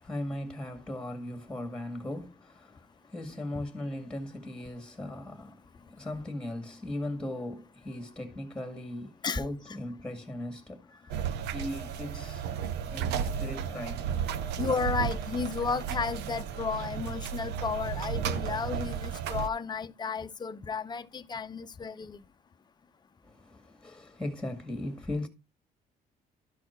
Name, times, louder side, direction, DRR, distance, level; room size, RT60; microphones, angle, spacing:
voice 1, 0.0-11.2 11.5-12.5 12.9-14.4 23.2-25.3, left 1 dB, 5° left, 2.0 m, -38 dB
sound 1, 11.1-19.5, right 8 dB, 85° right, 0.8 m, -33 dB
voice 2, 14.6-22.2, left 5 dB, 25° left, 0.7 m, -33 dB
12.5 x 4.3 x 4.4 m
cardioid pair, 110°, 17 cm